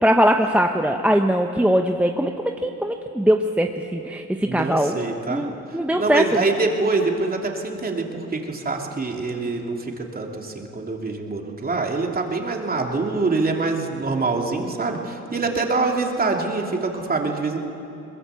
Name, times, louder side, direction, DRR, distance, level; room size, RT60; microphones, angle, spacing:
voice 1, 0.0-2.3 2.6-4.2 4.5-5.0 5.3-6.4, equal, 5° right, 4 dB, 1.0 m, -20 dB
voice 2, 4.4-5.4 5.9-17.6, right 3 dB, 30° right, 1 dB, 2.9 m, -25 dB
22.0 x 20.5 x 8.3 m, 2.9 s
cardioid pair, 90°, 30 cm